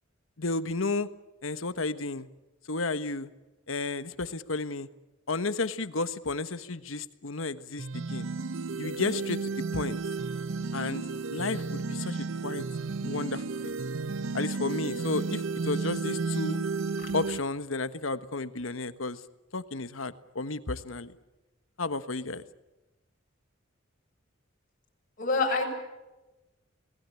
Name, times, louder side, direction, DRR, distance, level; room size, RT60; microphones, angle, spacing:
voice 1, 0.4-1.1 1.4-2.3 2.7-3.3 3.7-4.9 5.3-8.2 8.8-10.0 10.7-11.0 11.3-12.6 13.0-13.7 14.3-16.6 17.1-19.2 19.5-21.1 21.8-22.4, left 3 dB, 75° left, 12 dB, 1.4 m, -32 dB
sound 1, 7.8-17.4, right 4 dB, 70° right, 0.8 m, -33 dB
voice 2, 25.2-25.7, left 3 dB, 40° left, 0 dB, 7.0 m, -27 dB
27.0 x 19.5 x 8.5 m, 1.1 s
head